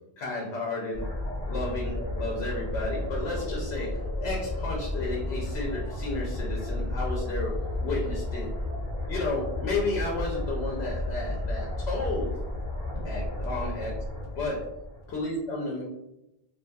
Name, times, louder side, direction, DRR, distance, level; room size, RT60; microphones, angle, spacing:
voice 1, 0.2-1.0 1.4-3.9 4.2-7.5 7.8-8.5 9.1-12.3 13.0-13.9 14.4-14.6 15.1-15.8, left 2 dB, 90° left, -2 dB, 0.8 m, -32 dB
sound 1, 0.9-15.2, left 1 dB, 20° left, 0.6 m, -32 dB
2.6 x 2.5 x 2.2 m, 0.92 s
omnidirectional pair, 1.0 m